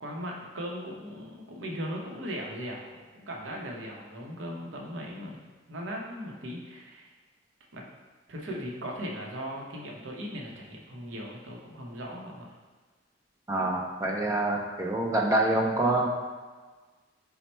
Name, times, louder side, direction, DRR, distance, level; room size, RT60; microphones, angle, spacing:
voice 1, 0.0-7.1 7.7-7.9 8.3-12.5, equal, 85° right, -1 dB, 0.7 m, -38 dB
voice 2, 13.5-16.1, right 1 dB, 15° right, -1 dB, 0.3 m, -26 dB
4.2 x 2.1 x 4.2 m, 1.3 s
head